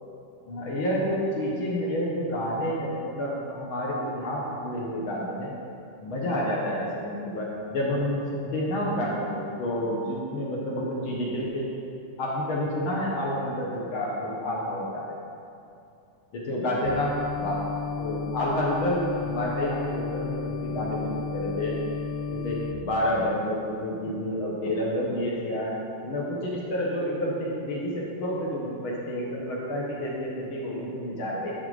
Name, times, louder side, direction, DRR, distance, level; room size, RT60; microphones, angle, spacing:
voice 1, 0.5-5.5 6.0-11.7 12.2-15.1 16.5-17.6 18.0-21.7 22.3-25.7 26.0-31.5, left 1 dB, 60° left, -4 dB, 1.5 m, -29 dB
sound 1, 16.8-22.7, left 5 dB, 75° left, 1.4 m, -33 dB
12.5 x 4.5 x 4.8 m, 2.6 s
omnidirectional pair, 3.6 m